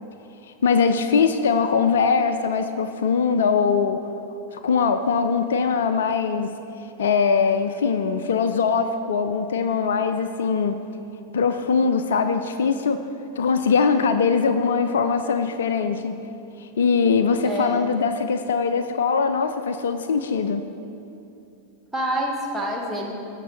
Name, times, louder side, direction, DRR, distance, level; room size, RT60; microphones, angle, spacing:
voice 1, 0.6-4.0 4.5-6.5 7.0-10.8 11.3-13.0 13.4-16.2 16.6-20.7, left 5 dB, 60° left, 9 dB, 0.4 m, -21 dB
voice 2, 17.4-18.0 21.9-23.1, equal, 5° right, -2 dB, 1.7 m, -27 dB
16.0 x 6.6 x 4.0 m, 2.7 s
figure-of-eight pair, 90°, 0 cm